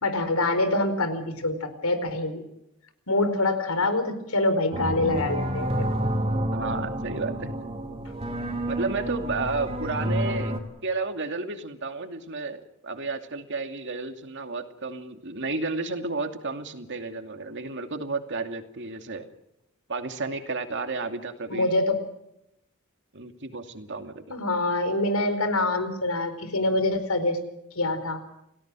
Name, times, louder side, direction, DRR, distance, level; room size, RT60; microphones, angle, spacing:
voice 1, 0.0-2.4 3.1-5.7 10.0-10.2 21.5-22.0 24.3-27.4 27.8-28.2, left 2 dB, 85° left, 10 dB, 4.5 m, -25 dB
sound 1, 4.7-10.6, right 1 dB, 30° right, 3.5 m, -29 dB
voice 2, 6.5-7.5 8.7-10.6 10.8-19.3 19.9-21.7 23.1-24.3, right 3 dB, 55° right, 6 dB, 2.6 m, -32 dB
30.0 x 17.5 x 6.3 m, 0.83 s
head